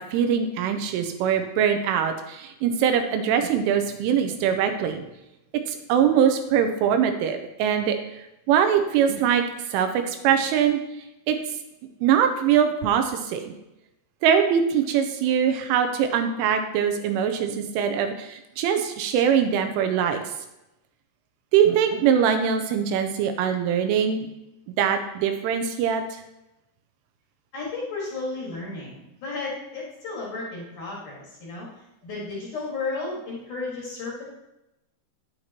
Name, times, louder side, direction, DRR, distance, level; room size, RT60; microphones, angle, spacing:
voice 1, 0.0-5.0 5.7-8.0 8.5-9.4 9.7-10.8 11.3-11.4 12.0-13.5 14.2-20.2 21.5-24.3 24.8-26.0, right 8 dB, 85° right, 7 dB, 3.2 m, -22 dB
voice 2, 27.5-31.7 32.0-34.2, left 3 dB, 55° left, -5 dB, 2.7 m, -33 dB
9.6 x 8.9 x 2.9 m, 0.92 s
omnidirectional pair, 5.7 m